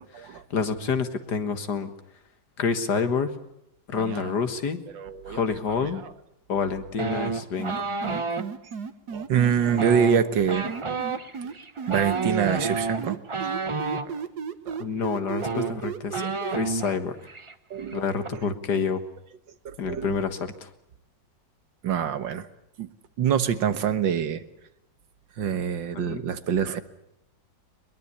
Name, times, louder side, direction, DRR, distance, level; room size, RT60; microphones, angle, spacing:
voice 1, 0.1-1.9 2.6-3.3 3.9-4.8 5.3-6.0 6.5-7.7 14.8-16.2 16.5-17.2 17.9-19.0 19.8-20.7 26.0-26.2, left 5 dB, 65° left, 9 dB, 2.1 m, -28 dB
voice 2, 4.0-4.3 4.9-5.4 9.1-10.7 11.4-11.5 11.9-13.5 14.1-14.2 14.7-14.8 17.7-18.0 19.7-20.2 21.8-22.5 22.8-22.9 23.2-24.4 25.4-26.8, right 8 dB, 85° right, 11 dB, 2.0 m, -25 dB
sound 1, 7.0-8.5 9.7-14.1 15.0-15.1 15.3-17.0 17.3-17.5 17.8-18.3, right 4 dB, 25° right, 0.6 m, -30 dB
Going up, 7.6-9.9 10.6-12.7 13.0-16.6, right 6 dB, 60° right, 1.8 m, -34 dB
22.0 x 22.0 x 8.3 m, 0.79 s
omnidirectional pair, 2.0 m